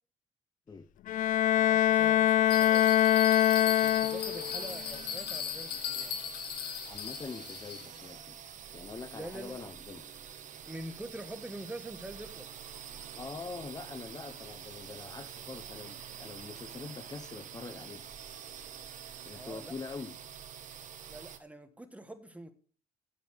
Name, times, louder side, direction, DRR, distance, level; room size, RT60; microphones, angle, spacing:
Bowed string instrument, 1.1-4.6, left 12 dB, 55° left, 0.4 m, -24 dB
voice 1, 1.5-2.9 3.8-6.1 9.1-9.5 10.6-12.4 19.3-19.7 21.1-22.5, right 1 dB, 10° right, 9 dB, 1.4 m, -45 dB
sound 1, 1.8-21.4, right 8 dB, 50° right, 1.3 m, -47 dB
Bell, 2.5-8.1, left 9 dB, 75° left, 1.7 m, -38 dB
voice 2, 6.8-8.4 8.7-10.0 13.1-18.1 19.2-20.1, left 4 dB, 25° left, 10 dB, 0.8 m, -44 dB
9.4 x 6.9 x 6.4 m, 0.43 s
cardioid pair, 110°, 17 cm